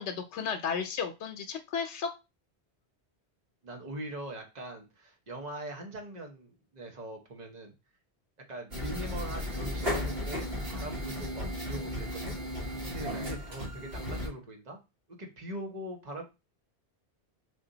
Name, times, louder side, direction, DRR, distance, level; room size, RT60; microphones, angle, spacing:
voice 1, 0.0-2.1, left 6 dB, 90° left, 5 dB, 0.9 m, -33 dB
voice 2, 3.6-7.7 8.5-14.8 15.1-16.2, right 1 dB, 40° right, 2 dB, 1.0 m, -42 dB
sound 1, 8.7-14.3, left 1 dB, 65° right, 1.4 m, -35 dB
3.7 x 2.5 x 3.9 m, 0.26 s
omnidirectional pair, 1.1 m